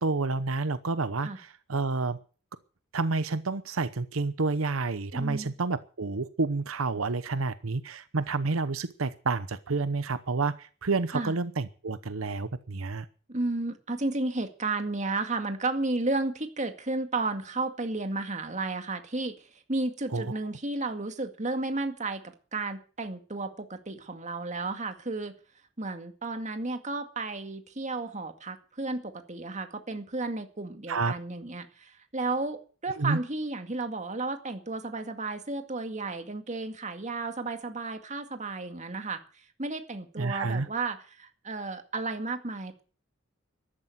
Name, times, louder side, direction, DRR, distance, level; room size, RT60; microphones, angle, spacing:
voice 1, 0.0-2.2 2.9-13.1 20.1-20.2 30.9-31.1 33.0-33.2 40.2-40.7, right 3 dB, 85° right, 0.9 m, -29 dB
voice 2, 5.1-5.5 11.1-11.3 13.3-22.2 22.5-25.4 25.8-42.8, right 3 dB, 35° right, 2.1 m, -33 dB
14.0 x 11.5 x 7.8 m
head